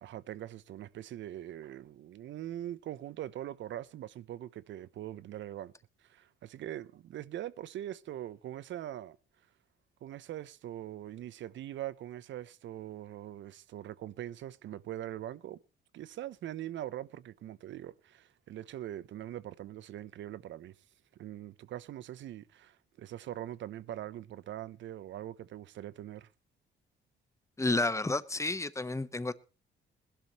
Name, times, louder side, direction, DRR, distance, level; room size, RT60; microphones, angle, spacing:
voice 1, 0.0-5.7 6.0-9.2 10.0-15.6 15.9-20.7 21.2-26.3, right 12 dB, 70° right, 0.7 m, -42 dB
voice 2, 27.6-29.3, left 2 dB, 15° left, 1.0 m, -31 dB
20.5 x 11.5 x 3.0 m
cardioid pair, 90°, 20 cm